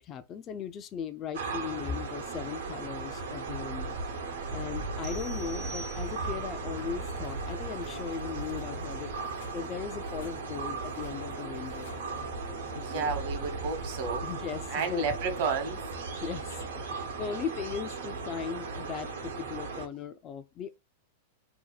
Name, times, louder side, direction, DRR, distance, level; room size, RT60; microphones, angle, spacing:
voice 1, 0.0-4.0 4.5-9.1 9.5-11.9 12.7-13.1 14.2-15.1 16.1-16.6 16.9-20.8, left 7 dB, 35° left, 0.4 m, -38 dB
sound 1, 1.3-19.9, right 4 dB, 75° right, 0.9 m, -37 dB
sound 2, 5.0-6.6, right 2 dB, 30° right, 0.7 m, -45 dB
sound 3, 6.8-15.4, left 5 dB, 70° left, 0.8 m, -52 dB
voice 2, 12.7-14.3 14.7-15.9, right 5 dB, 55° right, 1.1 m, -31 dB
2.8 x 2.2 x 3.9 m
hypercardioid pair, 105°, 0 cm